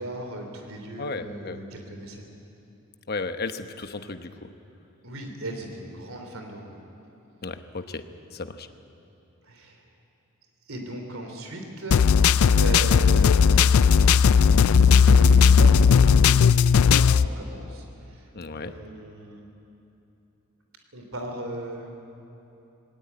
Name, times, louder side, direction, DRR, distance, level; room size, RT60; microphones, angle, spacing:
voice 1, 0.0-2.3 5.0-6.8 9.4-9.8 10.7-14.2 14.8-19.4 20.9-21.9, right 1 dB, 70° right, 4 dB, 3.4 m, -37 dB
voice 2, 1.0-1.6 3.1-4.5 7.4-8.0 8.3-8.7 18.3-18.7, left 3 dB, 50° left, 9 dB, 1.0 m, -34 dB
sound 1, 11.9-17.3, left 6 dB, 85° left, 0.4 m, -16 dB
20.0 x 18.0 x 9.6 m, 3.0 s
head